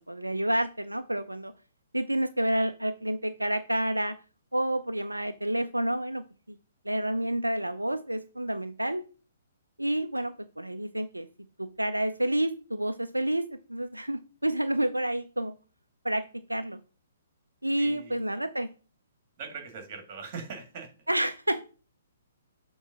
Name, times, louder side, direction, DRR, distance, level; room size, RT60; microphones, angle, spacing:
voice 1, 0.0-1.5 1.9-4.2 4.5-6.6 6.9-9.0 9.8-11.3 11.6-15.5 16.0-16.8 17.6-18.7 21.1-21.6, right 1 dB, 85° right, 10 dB, 0.4 m, -29 dB
voice 2, 17.8-18.2 19.4-20.9, right 5 dB, 35° right, 5 dB, 1.9 m, -41 dB
7.1 x 3.1 x 5.9 m, 0.36 s
figure-of-eight pair, 125°, 0 cm